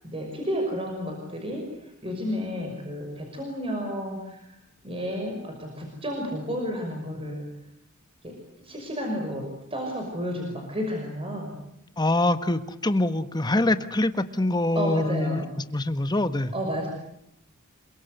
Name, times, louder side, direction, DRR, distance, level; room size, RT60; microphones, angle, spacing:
voice 1, 0.0-4.6 4.8-7.5 8.2-8.3 8.6-11.6 14.8-15.5 16.5-16.9, equal, 25° right, 2 dB, 5.8 m, -31 dB
voice 2, 12.0-15.4 15.7-16.5, left 1 dB, 20° left, 11 dB, 1.4 m, -24 dB
28.0 x 24.0 x 8.1 m, 0.81 s
head